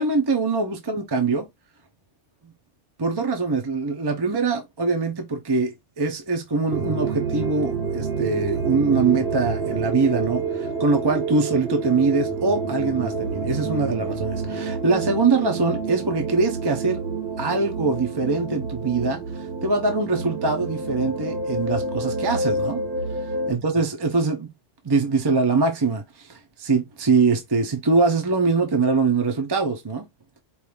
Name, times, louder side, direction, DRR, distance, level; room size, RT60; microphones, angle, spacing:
voice 1, 0.0-1.4 3.0-17.0 17.4-19.2 19.6-22.8 23.5-24.5 24.8-30.1, right 4 dB, 25° right, 0.7 m, -23 dB
sound 1, 6.7-23.5, right 4 dB, 55° right, 1.2 m, -28 dB
4.7 x 2.6 x 3.4 m
omnidirectional pair, 1.3 m